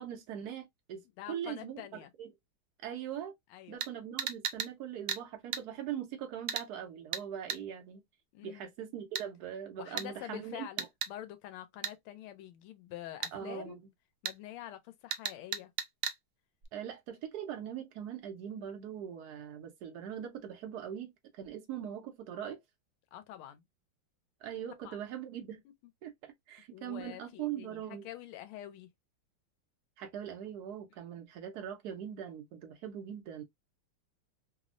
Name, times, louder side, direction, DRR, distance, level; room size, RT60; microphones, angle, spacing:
voice 1, 0.0-2.3 2.8-3.3 3.7-8.0 8.4-10.9 13.3-13.8 16.7-22.6 24.4-25.6 26.0-28.0 30.0-33.4, right 9 dB, 90° right, 0.8 m, -41 dB
voice 2, 1.2-2.1 3.5-3.8 8.3-8.7 9.8-10.8 11.1-13.8 14.2-15.7 23.1-23.6 24.8-25.0 25.6-25.7 26.7-28.9 31.1-31.2, left 13 dB, 90° left, 1.5 m, -46 dB
sound 1, 3.8-3.9 4.2-4.7 5.1-5.2 5.5-5.6 6.5-6.7 7.1-7.2 7.5-7.6 9.2-9.3 10.0-10.1 10.8-11.1 11.8-12.0 13.2-13.3 14.3-14.4 15.1-16.2 16.6-16.7, right 9 dB, 75° right, 1.1 m, -35 dB
3.4 x 2.0 x 2.4 m
omnidirectional pair, 2.3 m